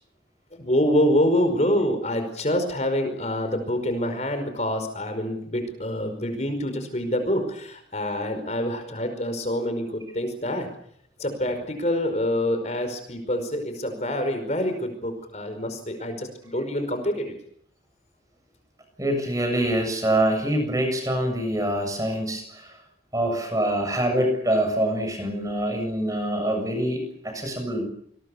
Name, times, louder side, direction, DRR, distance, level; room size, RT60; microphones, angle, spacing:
voice 1, 0.5-10.7 11.2-17.4, left 1 dB, 40° left, 8 dB, 5.2 m, -26 dB
voice 2, 19.0-22.8 23.1-27.8, right 1 dB, 20° right, 5 dB, 7.4 m, -25 dB
27.5 x 22.0 x 7.2 m, 0.68 s
head